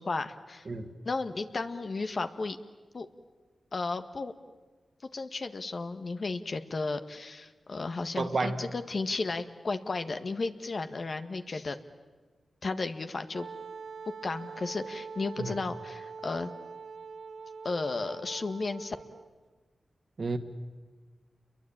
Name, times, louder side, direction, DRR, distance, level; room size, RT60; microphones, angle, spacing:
voice 1, 0.0-0.7 1.0-2.6 2.9-3.1 3.7-4.3 5.1-11.8 12.6-13.5 14.2-16.5 17.6-19.0, left 3 dB, 55° left, 8 dB, 1.7 m, -34 dB
voice 2, 8.2-8.7 15.4-15.6 20.2-20.4, right 3 dB, 60° right, 6 dB, 2.3 m, -30 dB
Wind instrument woodwind instrument, 13.3-19.3, right 5 dB, 75° right, 1.3 m, -44 dB
28.5 x 22.5 x 8.9 m, 1.4 s
cardioid pair, 45°, 0 cm